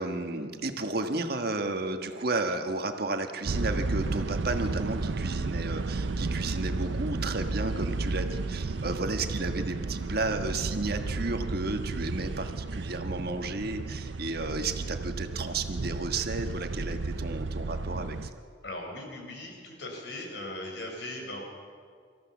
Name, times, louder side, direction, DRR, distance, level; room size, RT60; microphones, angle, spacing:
voice 1, 0.0-18.3, right 2 dB, 55° right, 6 dB, 1.4 m, -33 dB
sound 1, 3.4-18.3, right 3 dB, 75° right, 0.6 m, -33 dB
voice 2, 18.6-21.4, left 1 dB, 65° left, 1 dB, 4.6 m, -39 dB
25.0 x 14.5 x 7.2 m, 2.1 s
head